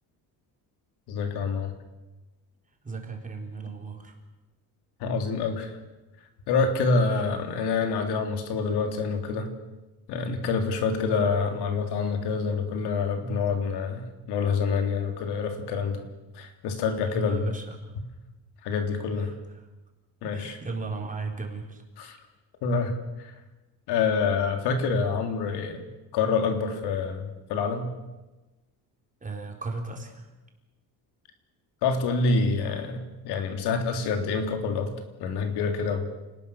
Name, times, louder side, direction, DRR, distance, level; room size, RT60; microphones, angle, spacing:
voice 1, 1.1-1.7 5.0-5.7 6.5-9.5 10.1-16.0 16.3-17.5 18.6-19.3 20.2-20.6 22.0-22.2 22.6-22.9 23.2-23.3 23.9-25.8 26.1-27.9 31.8-34.9 35.2-36.1, left 4 dB, 90° left, 5 dB, 3.6 m, -27 dB
voice 2, 2.8-4.2 17.1-17.9 19.2-19.7 20.2-21.8 29.2-30.3, right 3 dB, 20° right, 2 dB, 4.2 m, -35 dB
28.0 x 19.5 x 6.6 m, 1.1 s
cardioid pair, 135°, 39 cm